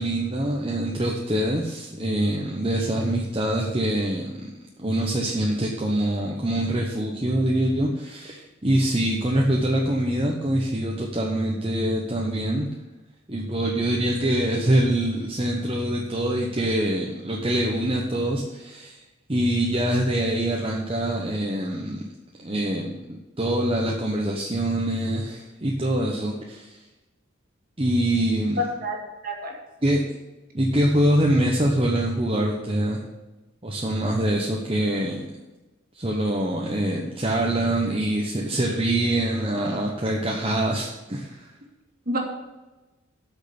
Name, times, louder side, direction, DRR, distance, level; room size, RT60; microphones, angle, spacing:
voice 1, 0.0-4.5 4.8-12.7 13.3-19.0 19.3-22.1 22.4-23.0 23.4-26.8 27.8-28.6 29.8-30.0 30.5-33.0 33.6-35.3 35.9-41.5, right 1 dB, 25° right, -2 dB, 1.0 m, -24 dB
voice 2, 28.6-29.5 42.1-42.2, left 1 dB, 45° right, 0 dB, 2.1 m, -28 dB
8.5 x 6.5 x 8.2 m, 1.1 s
head